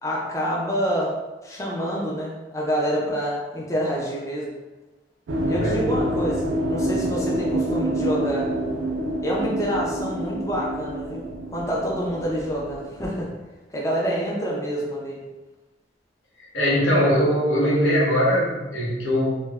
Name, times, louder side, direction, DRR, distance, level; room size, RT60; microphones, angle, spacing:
voice 1, 0.0-1.2 1.4-4.5 5.5-8.5 9.2-11.3 11.5-13.3 13.7-15.2, equal, 15° left, -5 dB, 0.4 m, -27 dB
sound 1, 5.3-12.8, right 1 dB, 90° right, 0.4 m, -27 dB
voice 2, 16.5-19.4, equal, 85° left, -5 dB, 0.8 m, -21 dB
2.2 x 2.1 x 3.3 m, 1.1 s
head